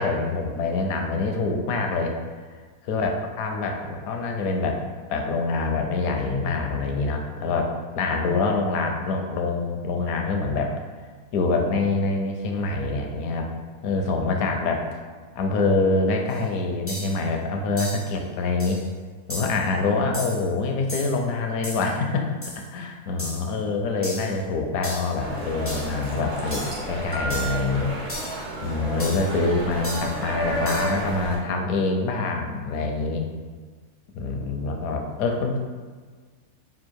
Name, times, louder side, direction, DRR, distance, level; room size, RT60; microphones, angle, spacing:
voice 1, 0.0-2.1 2.8-3.1 3.4-4.8 5.1-10.7 11.3-13.5 13.8-15.0 15.4-18.8 19.3-22.3 22.7-27.9 28.6-33.2 34.1-35.6, left 3 dB, 75° left, 3 dB, 1.0 m, -25 dB
sound 1, 16.3-16.4 16.9-17.2 17.8-18.1 18.6-18.9 19.3-19.7 20.1-20.5 20.9-21.2 21.6-21.9 22.4-22.7 23.2-23.5 24.0-24.4 24.8-25.2 25.7-26.0 26.5-26.8 27.3-27.6 28.1-28.4 29.0-29.3 29.8-30.2 30.7-31.0, left 1 dB, 20° left, 0.4 m, -35 dB
sound 2, 25.2-31.4, right 1 dB, 45° right, 0.5 m, -31 dB
sound 3, 26.5-27.7 28.5-28.8 29.8-29.9, right 4 dB, 65° right, 1.2 m, -34 dB
3.6 x 2.4 x 4.5 m, 1.5 s
omnidirectional pair, 1.6 m